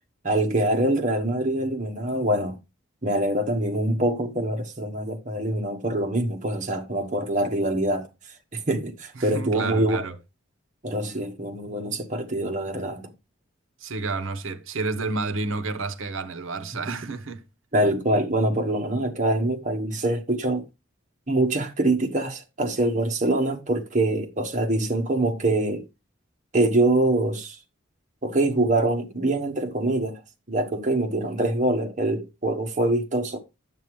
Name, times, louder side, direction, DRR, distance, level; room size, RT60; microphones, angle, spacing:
voice 1, 0.2-2.6 3.0-8.1 8.5-10.0 10.8-13.1 16.9-17.1 17.7-20.7 21.3-25.8 26.5-27.6 28.2-30.2 30.5-33.4, right 1 dB, 35° right, 1.2 m, -24 dB
voice 2, 9.2-10.1 13.8-17.4, right 3 dB, 70° right, 0.9 m, -30 dB
9.0 x 7.7 x 3.1 m
head